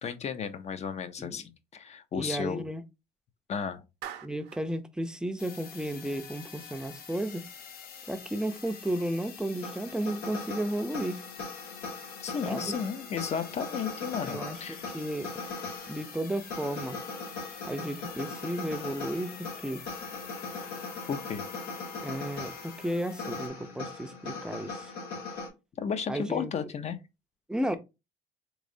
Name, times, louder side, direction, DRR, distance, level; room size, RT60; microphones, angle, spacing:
voice 1, 0.0-2.7 3.5-3.8 12.2-14.9 21.1-21.5 25.8-27.0, left 6 dB, 40° left, 0.6 m, -34 dB
voice 2, 2.1-2.8 4.2-7.4 8.1-11.2 12.4-12.8 14.2-15.3 15.9-17.0 17.6-19.8 22.0-24.9 26.1-26.5 27.5-27.8, right 1 dB, 5° right, 0.5 m, -33 dB
Clapping, 4.0-4.7, right 10 dB, 80° right, 0.6 m, -42 dB
sound 1, 5.4-23.5, left 7 dB, 60° left, 0.8 m, -47 dB
sound 2, 9.6-25.5, left 4 dB, 85° left, 1.7 m, -40 dB
3.6 x 3.1 x 2.6 m
cardioid pair, 110°, 17 cm